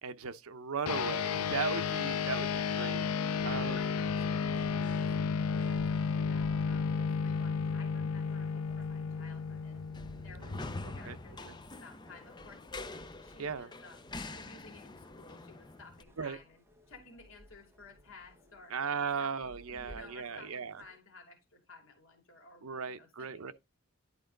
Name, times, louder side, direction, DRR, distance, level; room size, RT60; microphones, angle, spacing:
voice 1, 0.0-3.0 3.4-3.8 10.5-11.2 11.4-11.5 13.4-13.7 16.2-16.4 18.7-20.7 22.6-23.5, right 5 dB, 75° right, 0.7 m, -37 dB
sound 1, 0.9-10.6, left 6 dB, 85° left, 0.6 m, -32 dB
sound 2, 3.3-16.0, left 2 dB, 20° left, 0.5 m, -47 dB
voice 2, 3.7-9.8 10.2-18.8 19.2-23.5, left 3 dB, 60° left, 2.7 m, -55 dB
sound 3, 5.4-21.0, equal, 10° right, 1.3 m, -58 dB
11.0 x 4.6 x 3.9 m
head